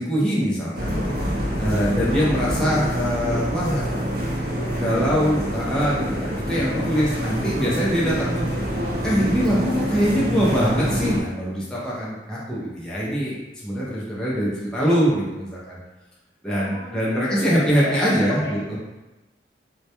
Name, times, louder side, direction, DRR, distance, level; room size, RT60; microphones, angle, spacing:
voice 1, 0.0-3.8 4.8-8.4 9.0-15.8 16.4-18.6, equal, 5° left, -8 dB, 0.4 m, -23 dB
sound 1, 0.7-11.2, equal, 55° right, 0.5 m, -26 dB
voice 2, 3.7-4.3 4.6-5.6 16.5-18.8, left 1 dB, 75° left, -3 dB, 0.6 m, -37 dB
2.2 x 2.1 x 2.8 m, 1.1 s
head